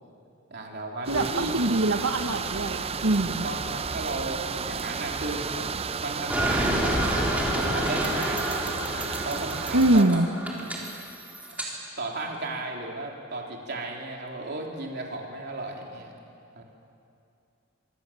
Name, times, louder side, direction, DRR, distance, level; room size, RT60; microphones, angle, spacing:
voice 1, 0.5-1.6 3.2-5.4 6.0-8.6 9.2-10.2 12.0-16.1 16.5-16.6, right 2 dB, 55° right, 0 dB, 3.7 m, -35 dB
sound 1, 1.0-10.0, right 5 dB, 30° right, 0.5 m, -33 dB
voice 2, 1.1-3.5 9.7-10.3, right 1 dB, 90° right, 4 dB, 1.1 m, -23 dB
sound 2, 6.3-11.7, right 1 dB, 5° right, 3.8 m, -29 dB
25.5 x 24.0 x 7.6 m, 2.6 s
head